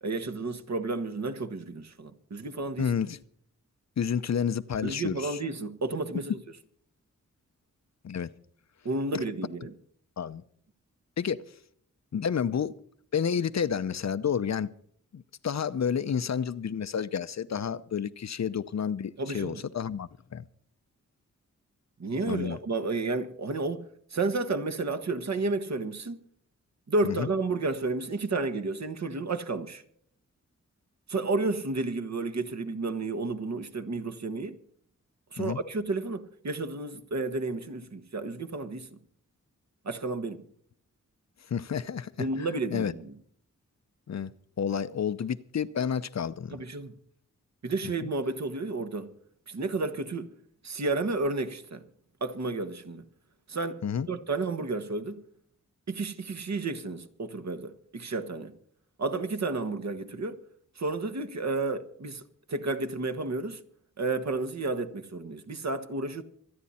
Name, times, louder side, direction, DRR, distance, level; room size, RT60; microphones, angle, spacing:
voice 1, 0.0-2.9 4.8-6.4 8.8-9.7 19.2-19.6 22.0-26.2 26.9-29.8 31.1-34.6 35.3-39.0 39.8-40.4 42.2-43.1 46.5-46.9 47.6-49.1 49.5-50.3 50.6-51.8 52.2-53.0 53.5-55.2 55.9-58.5 59.0-60.4 60.8-63.6 64.0-66.2, right 3 dB, 60° right, 1.5 m, -31 dB
voice 2, 2.8-3.2 4.0-5.4 6.1-6.2 8.0-8.3 9.1-9.2 10.2-10.4 11.2-11.4 12.1-12.7 13.1-14.7 15.1-20.4 22.2-22.6 27.0-27.3 35.4-35.6 41.5-42.3 42.7-42.9 44.1-44.3 44.6-46.6 53.8-54.1, left 7 dB, 60° left, 0.7 m, -30 dB
25.5 x 9.7 x 4.3 m
wide cardioid pair, 100°, 31 cm